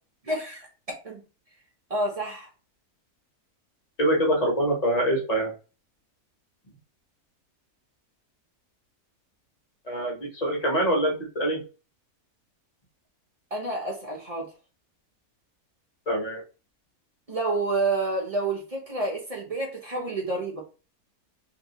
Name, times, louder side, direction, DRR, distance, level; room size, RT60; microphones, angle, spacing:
voice 1, 0.2-0.7 1.0-1.2 1.9-2.5 13.5-14.5 17.3-20.6, right 2 dB, 40° right, 0 dB, 0.5 m, -29 dB
voice 2, 4.0-5.5 9.9-11.6 16.1-16.4, right 1 dB, 30° left, -1 dB, 1.1 m, -24 dB
3.0 x 2.8 x 2.8 m, 0.33 s
omnidirectional pair, 1.6 m